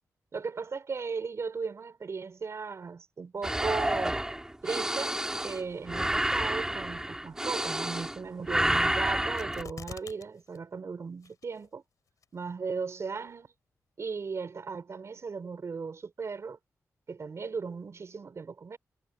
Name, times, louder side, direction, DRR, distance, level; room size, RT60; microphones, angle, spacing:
voice 1, 0.3-4.2 4.6-11.8 12.3-13.5 14.0-16.6 17.1-18.8, right 5 dB, 50° right, 4.9 m, -37 dB
sound 1, 3.4-8.2 8.5-9.6, right 1 dB, 10° right, 5.5 m, -29 dB
sound 2, 9.4-10.2 10.5-10.6 11.2-11.7 12.2-12.3, left 7 dB, 75° left, 4.6 m, -44 dB
cardioid pair, 90°, 6 cm